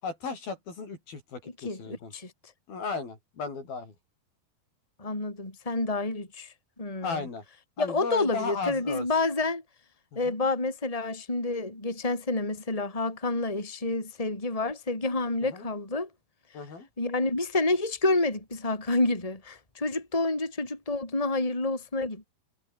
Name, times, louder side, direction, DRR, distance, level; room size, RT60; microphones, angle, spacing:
voice 1, 0.0-2.1 2.7-3.9 7.0-7.4 7.8-9.1 10.1-10.4 15.5-15.7 16.5-16.9, left 4 dB, 65° left, 8.4 m, -35 dB
voice 2, 1.6-2.3 5.0-7.3 7.8-9.6 10.2-16.1 17.0-22.2, left 2 dB, 10° left, 4.0 m, -29 dB
omnidirectional pair, 4.5 m